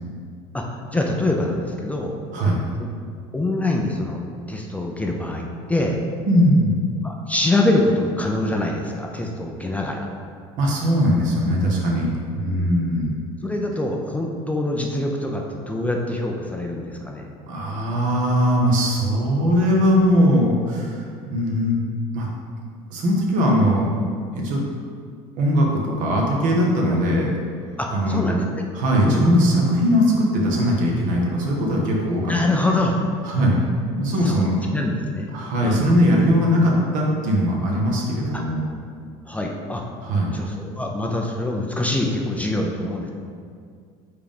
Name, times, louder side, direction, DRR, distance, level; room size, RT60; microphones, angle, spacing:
voice 1, 0.5-2.1 3.3-4.2 4.5-6.0 7.0-10.1 13.4-17.3 27.8-28.4 29.0-29.3 32.3-33.0 34.2-34.4 34.7-35.3 35.6-35.9 38.3-38.4 39.3-39.8 40.3-43.1, left 2 dB, 10° left, 0 dB, 0.6 m, -24 dB
voice 2, 6.2-6.7 10.6-13.1 17.5-21.8 22.1-22.3 22.9-23.9 24.3-24.6 25.4-27.3 27.9-28.3 28.7-32.3 33.2-33.6 33.9-34.6 35.3-38.6 40.0-40.3, equal, 65° right, -2 dB, 1.4 m, -20 dB
4.9 x 3.7 x 5.2 m, 2.2 s
supercardioid pair, 105°, 15 cm